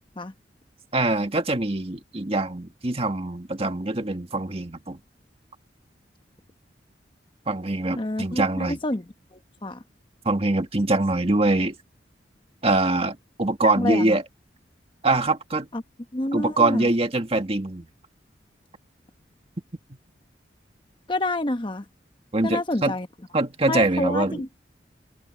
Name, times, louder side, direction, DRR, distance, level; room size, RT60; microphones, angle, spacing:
voice 1, 0.9-5.0 7.5-8.8 10.3-11.8 12.6-14.2 15.0-15.7 16.3-17.9 22.3-23.0 23.3-24.6, right 2 dB, 35° right, 1.8 m, -23 dB
voice 2, 8.0-9.0 9.3-9.8 13.6-14.2 15.7-15.8 16.1-16.9 21.1-21.8 22.4-23.1 23.7-24.6, left 2 dB, 25° left, 1.0 m, -28 dB
open air
head